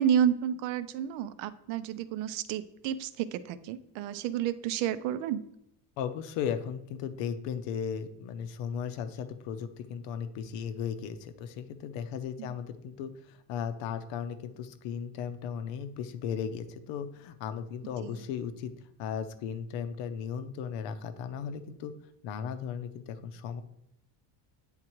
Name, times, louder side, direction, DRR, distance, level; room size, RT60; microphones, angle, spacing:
voice 1, 0.0-5.4 12.4-12.5 18.0-18.3, right 9 dB, 80° right, 14 dB, 0.6 m, -30 dB
voice 2, 6.0-18.7 19.0-21.9 22.2-23.6, left 7 dB, 80° left, 10 dB, 0.7 m, -36 dB
8.9 x 3.7 x 3.0 m, 0.79 s
cardioid pair, 160°, 44 cm